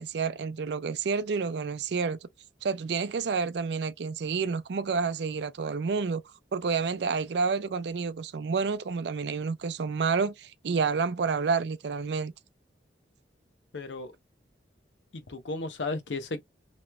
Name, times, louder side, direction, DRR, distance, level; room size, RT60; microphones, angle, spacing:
voice 1, 0.0-2.2 2.6-6.2 6.5-12.3, right 5 dB, 70° right, 0.4 m, -29 dB
voice 2, 13.7-14.1 15.1-16.4, left 3 dB, 90° left, 0.7 m, -34 dB
3.1 x 3.0 x 2.2 m
head